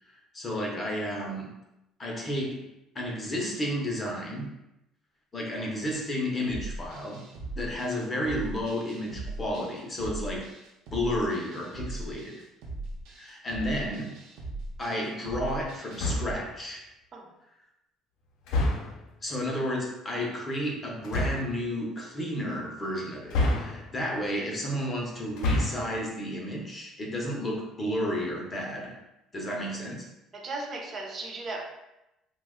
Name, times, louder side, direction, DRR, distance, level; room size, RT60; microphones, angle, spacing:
voice 1, 0.3-1.5 2.0-2.7 2.9-4.5 5.3-7.2 7.6-10.5 10.9-12.4 13.1-14.2 14.8-16.8 19.2-29.0 29.3-30.1, equal, 20° left, -1 dB, 0.6 m, -32 dB
sound 1, 6.5-16.3, right 2 dB, 70° right, 0.6 m, -39 dB
sound 2, 15.9-16.5 18.5-19.1 21.0-21.6 23.3-24.1 25.3-26.0, left 2 dB, 70° left, 0.5 m, -28 dB
voice 2, 30.3-31.6, right 3 dB, 30° right, 1 dB, 0.5 m, -36 dB
2.9 x 2.1 x 3.5 m, 0.89 s
cardioid pair, 165°, 0 cm